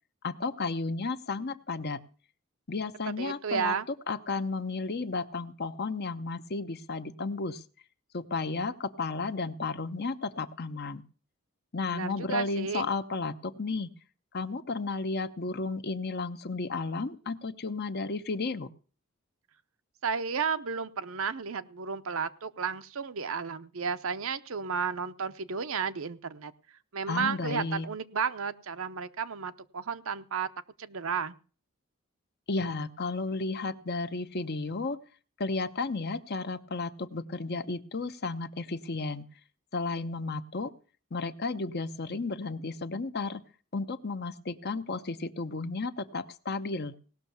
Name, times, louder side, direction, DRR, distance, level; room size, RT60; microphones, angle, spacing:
voice 1, 0.2-2.0 2.7-3.7 4.1-7.6 8.1-11.0 11.7-13.9 14.3-18.7 27.1-27.9 32.5-35.0 35.4-39.2 39.7-40.7 41.1-43.4 43.7-46.9, left 3 dB, 45° left, 11 dB, 0.8 m, -33 dB
voice 2, 3.2-3.9 11.9-12.9 20.0-26.5 26.9-30.5 30.8-31.4, right 6 dB, 65° right, 11 dB, 0.7 m, -33 dB
18.0 x 6.4 x 7.0 m, 0.39 s
head